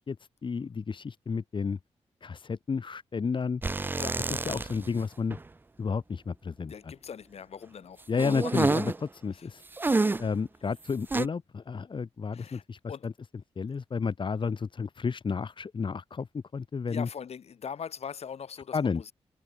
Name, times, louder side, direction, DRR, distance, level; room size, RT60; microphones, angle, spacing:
voice 1, 0.4-1.8 2.2-3.6 4.3-5.4 5.8-6.7 8.1-8.9 9.1-9.6 10.2-13.1 13.6-16.3 16.5-17.1 18.7-19.1, left 5 dB, 45° left, 2.1 m, -31 dB
sound 1, 3.6-5.0 5.3-5.4 8.2-9.0 9.8-10.4 11.1-11.3, right 3 dB, 20° right, 0.4 m, -28 dB
voice 2, 6.7-8.7 9.3-9.5 12.3-12.6 12.9-13.1 16.9-19.1, left 7 dB, 65° left, 7.5 m, -41 dB
cardioid pair, 85°, 11 cm